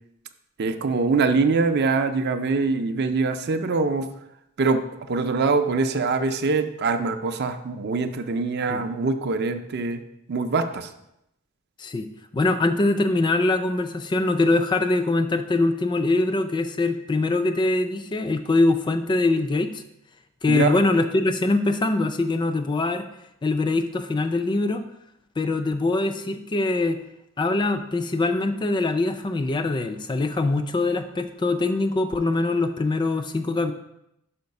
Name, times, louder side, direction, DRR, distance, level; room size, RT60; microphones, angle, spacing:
voice 1, 0.6-4.1 4.6-4.8 5.1-10.0 10.3-10.9 20.5-20.8, right 4 dB, 50° right, 8 dB, 0.5 m, -23 dB
voice 2, 12.3-19.8 20.4-23.1 23.4-24.8 25.4-27.0 27.4-33.7, left 2 dB, 20° left, 9 dB, 0.3 m, -23 dB
5.8 x 4.5 x 5.3 m, 0.83 s
head